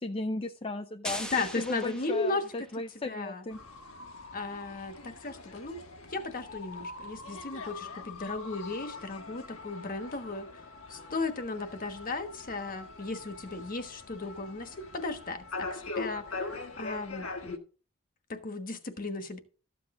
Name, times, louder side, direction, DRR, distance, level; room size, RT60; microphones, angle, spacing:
voice 1, 0.0-3.6, left 2 dB, 25° left, 0.5 m, -36 dB
sound 1, 1.0-2.9, left 1 dB, 5° left, 1.0 m, -40 dB
voice 2, 1.2-2.7 3.0-3.4 4.3-5.8 6.1-10.5 10.9-17.6 18.3-19.4, left 3 dB, 40° left, 1.3 m, -36 dB
sound 2, 3.5-17.6, left 3 dB, 80° left, 1.4 m, -42 dB
13.5 x 8.0 x 3.7 m
head